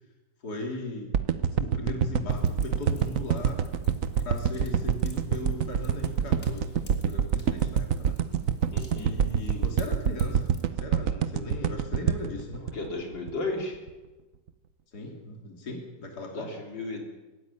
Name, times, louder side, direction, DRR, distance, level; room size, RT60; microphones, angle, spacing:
voice 1, 0.4-1.1 1.4-3.6 4.2-6.7 7.0-8.2 9.0-10.5 10.8-12.7 14.9-16.6, left 2 dB, 50° left, 1 dB, 3.6 m, -38 dB
sound 1, 1.1-13.5 13.9-14.0, right 8 dB, 55° right, 1.0 m, -26 dB
Fire, 2.3-10.6, left 3 dB, 35° left, 3.2 m, -48 dB
voice 2, 8.7-9.1 12.7-13.8 16.3-17.1, left 2 dB, 70° left, 0 dB, 4.0 m, -34 dB
23.5 x 13.0 x 9.8 m, 1.2 s
omnidirectional pair, 2.1 m